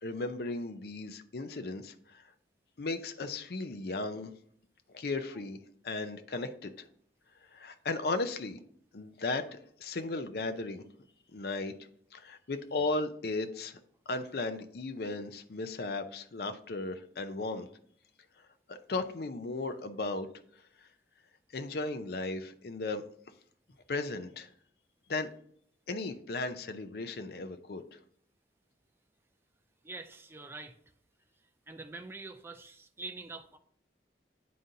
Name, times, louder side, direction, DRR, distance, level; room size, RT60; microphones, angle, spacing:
voice 1, 0.0-2.2 2.8-4.3 4.9-5.6 5.8-6.9 7.5-8.6 8.9-10.8 11.3-11.7 12.1-13.8 14.1-17.7 18.7-20.3 21.5-23.0 23.9-24.5 25.1-25.3 25.9-27.8, left 3 dB, 55° left, 9 dB, 0.5 m, -36 dB
voice 2, 29.8-30.8 31.7-33.6, right 3 dB, 15° right, 6 dB, 0.4 m, -45 dB
9.3 x 3.8 x 2.7 m, 0.64 s
head